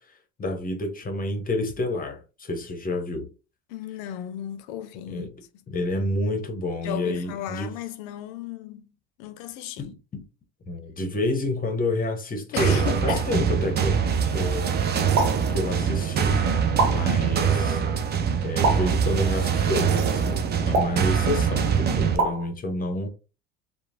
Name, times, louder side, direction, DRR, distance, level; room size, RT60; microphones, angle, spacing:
voice 1, 0.4-3.3 5.1-5.4 5.7-7.7 9.8-10.2 10.6-14.8 15.5-16.4 16.9-17.8 18.4-23.1, left 2 dB, 25° left, 0.7 m, -29 dB
voice 2, 3.7-5.3 6.8-8.9 9.2-9.8 12.5-13.5, left 11 dB, 75° left, 0.5 m, -35 dB
sound 1, 12.6-22.2, right 7 dB, 30° right, 0.4 m, -23 dB
sound 2, 13.1-13.4 15.2-15.5 16.8-17.2 18.6-19.1 20.7-21.1 22.2-22.5, right 3 dB, 90° right, 0.9 m, -25 dB
3.0 x 2.1 x 2.5 m
supercardioid pair, 90°, 36 cm